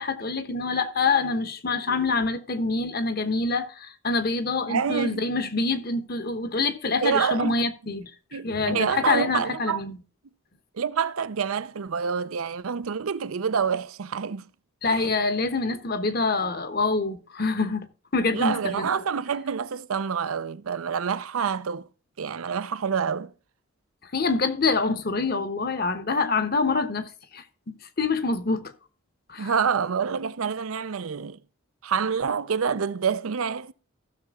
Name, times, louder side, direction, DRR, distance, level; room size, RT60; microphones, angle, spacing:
voice 1, 0.0-10.0 14.8-18.9 24.1-28.7 29.3-29.5, left 3 dB, 45° left, 1.0 m, -26 dB
voice 2, 4.7-5.3 7.0-7.6 8.3-9.8 10.7-14.5 14.9-15.1 18.3-21.9 22.2-23.3 29.4-31.4 31.8-33.7, right 6 dB, 85° right, 0.5 m, -27 dB
15.0 x 6.7 x 3.6 m
head